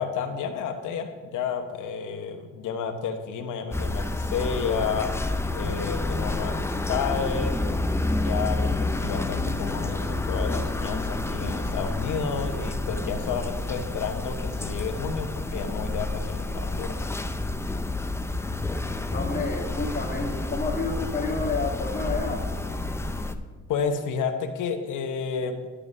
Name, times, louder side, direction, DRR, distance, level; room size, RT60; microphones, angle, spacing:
voice 1, 0.0-5.1 5.5-7.5 8.1-17.0 23.7-25.7, left 6 dB, 80° left, 7 dB, 1.1 m, -31 dB
sound 1, 3.7-23.3, left 2 dB, 10° left, 0.5 m, -29 dB
voice 2, 19.0-22.4, left 3 dB, 30° left, -1 dB, 2.2 m, -30 dB
11.5 x 4.9 x 6.2 m, 1.4 s
cardioid pair, 90°, 30 cm